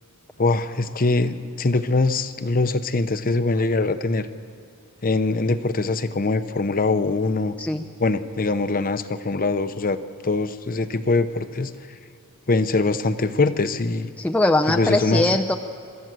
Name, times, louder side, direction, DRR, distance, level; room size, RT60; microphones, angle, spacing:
voice 1, 0.4-4.3 5.0-7.5 8.0-11.7 12.5-14.1 14.7-15.4, left 3 dB, 40° left, 11 dB, 0.8 m, -23 dB
voice 2, 14.2-15.5, left 2 dB, 5° left, 2 dB, 0.5 m, -21 dB
25.5 x 13.5 x 7.6 m, 2.6 s
head